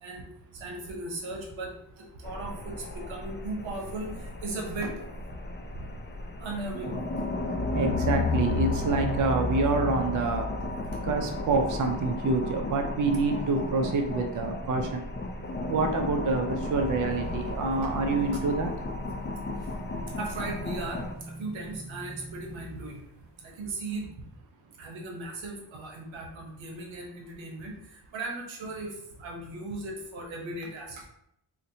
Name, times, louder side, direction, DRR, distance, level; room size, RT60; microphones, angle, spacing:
voice 1, 0.5-5.0 6.4-7.0 20.1-23.0 23.4-24.1 24.8-31.1, right 2 dB, 75° right, 0 dB, 0.9 m, -37 dB
sound 1, 2.2-21.1, left 2 dB, 25° left, 0.5 m, -33 dB
voice 2, 7.7-10.5 11.0-15.1 15.7-18.7, right 3 dB, 45° right, 4 dB, 0.5 m, -27 dB
sound 2, 16.8-23.2, right 1 dB, 20° right, 1.2 m, -45 dB
3.9 x 2.1 x 2.7 m, 0.79 s
supercardioid pair, 40°, 46 cm